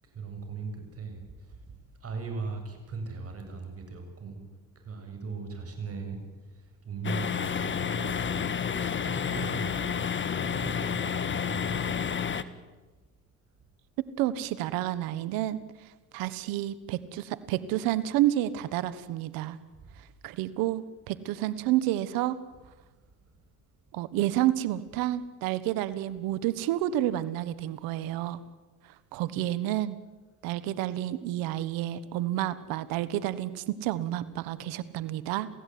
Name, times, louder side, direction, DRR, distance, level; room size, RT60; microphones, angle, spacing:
voice 1, 0.0-4.4 4.7-10.1 10.4-12.1 13.5-13.6 19.7-19.9 22.9-23.5, right 4 dB, 45° right, 4 dB, 7.7 m, -39 dB
sound 1, 7.0-12.4, left 7 dB, 35° left, 1.6 m, -30 dB
voice 2, 14.0-15.6 16.1-19.6 20.2-22.4 23.9-28.4 29.1-30.0 30.4-35.5, right 14 dB, 85° right, 15 dB, 1.4 m, -30 dB
27.5 x 16.5 x 9.4 m, 1.2 s
supercardioid pair, 80°, 34 cm